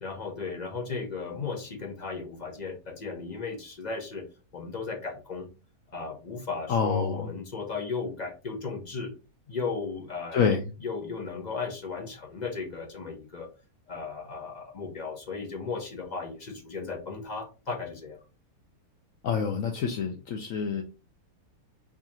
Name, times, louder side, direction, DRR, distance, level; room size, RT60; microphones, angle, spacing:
voice 1, 0.0-4.2 4.5-5.5 5.9-9.1 9.5-13.5 13.9-18.2, left 4 dB, 40° left, 2 dB, 0.6 m, -35 dB
voice 2, 6.7-7.3 10.3-10.6 19.2-20.8, left 6 dB, 70° left, 3 dB, 0.9 m, -27 dB
4.7 x 2.4 x 2.8 m, 0.31 s
omnidirectional pair, 1.6 m